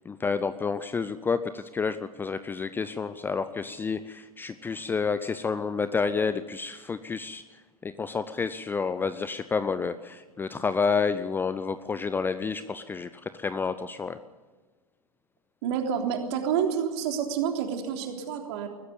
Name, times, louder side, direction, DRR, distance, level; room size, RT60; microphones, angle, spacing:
voice 1, 0.1-7.4 7.8-14.2, left 5 dB, 10° left, 13 dB, 0.6 m, -29 dB
voice 2, 15.6-18.7, right 8 dB, 45° right, 3 dB, 3.6 m, -28 dB
21.0 x 14.5 x 8.4 m, 1.3 s
figure-of-eight pair, 100°, 19 cm